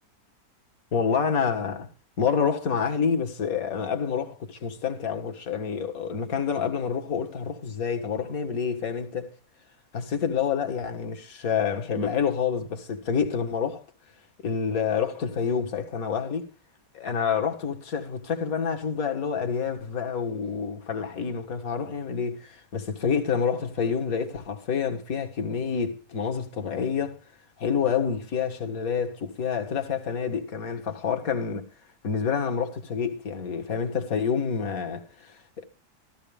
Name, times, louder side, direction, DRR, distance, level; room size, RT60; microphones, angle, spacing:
voice 1, 0.9-1.9 2.2-9.3 9.9-13.8 14.4-16.5 16.9-27.2 27.6-31.7 32.0-35.6, left 6 dB, 65° left, 2.1 m, -28 dB
14.5 x 14.0 x 3.4 m
omnidirectional pair, 1.6 m